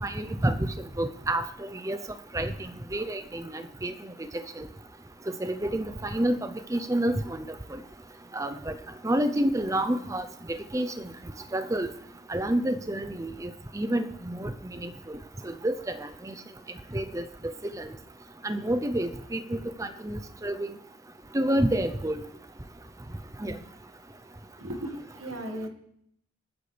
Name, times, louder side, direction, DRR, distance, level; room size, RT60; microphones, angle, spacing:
voice 1, 0.0-2.0 2.3-3.9 4.6-4.7 5.3-7.4 8.3-8.7 9.0-11.1 11.5-11.9 12.3-15.2 15.4-16.4 16.9-17.2 17.7-17.9 18.4-20.7 21.3-22.2 23.4-23.6, right 1 dB, 15° right, 9 dB, 0.6 m, -29 dB
voice 2, 24.6-25.7, right 1 dB, 85° right, 4 dB, 1.9 m, -36 dB
26.5 x 9.4 x 3.4 m, 0.72 s
head